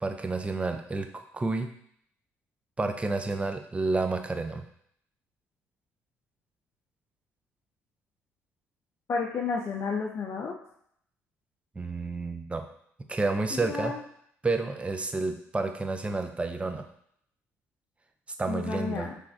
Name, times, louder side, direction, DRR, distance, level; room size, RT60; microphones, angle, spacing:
voice 1, 0.0-1.7 2.8-4.6 11.8-12.7 13.1-13.9 14.4-16.8 18.4-19.1, right 3 dB, 20° right, 6 dB, 0.6 m, -30 dB
voice 2, 9.1-10.5 13.6-14.0 18.5-19.1, left 4 dB, 50° left, 1 dB, 0.5 m, -31 dB
5.5 x 3.2 x 2.6 m, 0.69 s
supercardioid pair, 70°, 6 cm